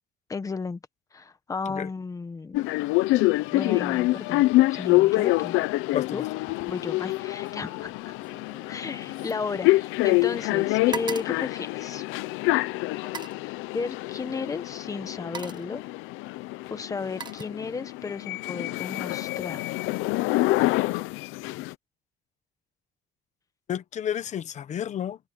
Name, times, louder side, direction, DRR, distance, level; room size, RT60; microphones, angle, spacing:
voice 1, 0.3-0.8 1.1-2.6 3.5-4.4 4.7-5.5 6.1-6.2 6.7-8.1 8.7-12.0 13.7-15.8 16.7-19.6, left 4 dB, 15° left, 1.3 m, -34 dB
sound 1, 2.5-21.7, left 19 dB, 80° left, 0.8 m, -26 dB
voice 2, 5.9-6.3 23.7-25.2, left 9 dB, 35° left, 1.1 m, -31 dB
sound 2, 6.4-6.8 7.1-10.2 10.5-12.4 13.0-13.5 14.5-14.7 15.1-15.8 16.6-18.0 18.4-18.8, right 6 dB, 20° right, 1.1 m, -42 dB
cardioid pair, 165°, 20 cm